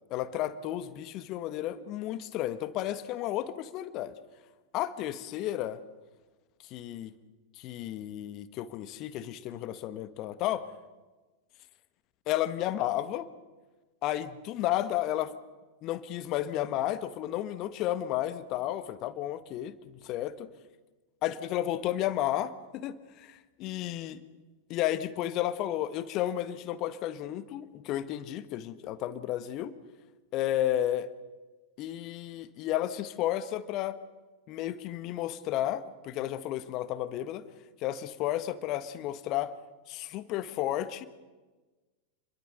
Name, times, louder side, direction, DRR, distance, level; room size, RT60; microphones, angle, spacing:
voice 1, 0.1-4.2 4.7-5.8 6.6-7.1 7.6-10.7 12.3-13.3 14.0-15.3 15.8-20.5 21.2-24.2 24.7-29.7 30.3-31.1 31.8-34.0 34.5-37.4 37.8-39.5 39.9-41.1, left 13 dB, 40° left, 14 dB, 1.5 m, -32 dB
28.5 x 22.5 x 6.7 m, 1.2 s
figure-of-eight pair, 90°, 0 cm